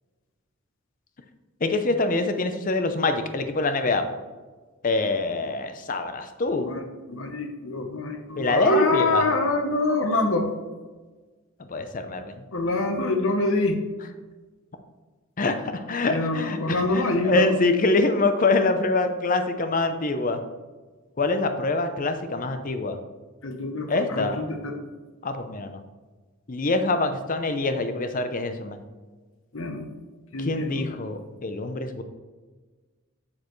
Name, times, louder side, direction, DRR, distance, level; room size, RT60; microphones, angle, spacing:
voice 1, 1.6-4.0 4.8-6.7 8.4-9.2 11.7-12.4 15.4-20.4 21.2-23.0 23.9-24.4 25.2-25.8 26.5-28.8 30.5-32.0, left 2 dB, 40° left, 8 dB, 0.6 m, -25 dB
voice 2, 6.6-10.5 12.5-13.8 16.0-17.6 23.4-24.7 29.5-29.8 30.3-30.9, left 2 dB, 65° left, 4 dB, 1.0 m, -26 dB
7.3 x 6.7 x 3.1 m, 1.3 s
head